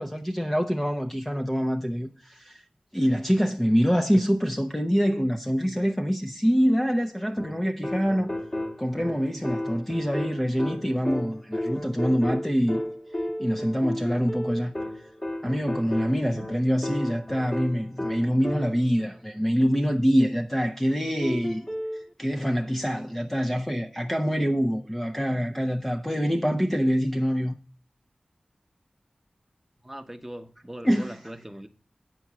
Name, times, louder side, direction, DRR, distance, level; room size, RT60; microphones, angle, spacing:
voice 1, 0.0-2.6 2.9-8.3 8.8-12.8 13.4-14.7 15.4-21.7 21.9-27.5 30.8-31.1, equal, 10° left, 0.8 m, -25 dB
sound 1, 7.4-19.0 21.2-22.0, left 1 dB, 35° left, 1.9 m, -33 dB
voice 2, 29.8-31.7, right 1 dB, 10° right, 1.1 m, -40 dB
9.4 x 4.5 x 7.3 m
cardioid pair, 45°, 2 cm